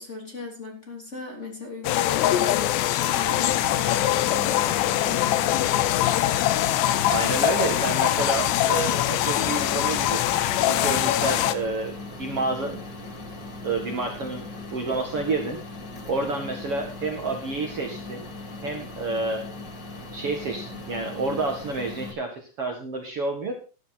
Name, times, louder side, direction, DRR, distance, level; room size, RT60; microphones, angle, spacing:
voice 1, 0.0-5.8, left 3 dB, 20° left, 1 dB, 2.7 m, -38 dB
sound 1, 1.8-11.5, left 13 dB, 80° left, 2.9 m, -23 dB
sound 2, 3.1-22.1, left 2 dB, 45° left, 1.5 m, -39 dB
voice 2, 7.1-10.4 10.6-12.9 13.6-15.6 16.1-18.2 18.6-19.5 20.1-23.5, right 3 dB, 55° right, 2 dB, 1.7 m, -29 dB
13.5 x 11.0 x 4.2 m, 0.34 s
omnidirectional pair, 5.2 m